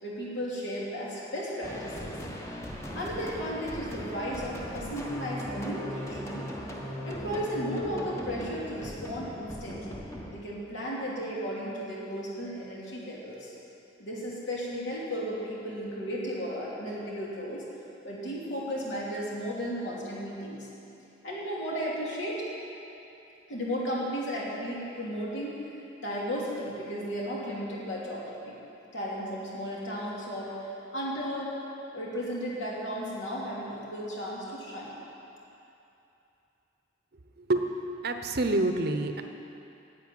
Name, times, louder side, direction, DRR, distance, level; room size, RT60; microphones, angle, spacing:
voice 1, 0.0-2.2 2.9-6.5 7.0-10.0 10.3-13.5 14.0-17.7 18.0-20.7 21.2-22.4 23.5-25.6 26.0-28.6 28.9-31.5 31.9-35.0, equal, 65° left, -5 dB, 3.0 m, -34 dB
sound 1, 1.6-10.4, equal, 15° left, 1.1 m, -38 dB
voice 2, 37.5-39.2, right 2 dB, 55° right, 6 dB, 0.8 m, -27 dB
10.5 x 8.1 x 9.3 m, 2.9 s
head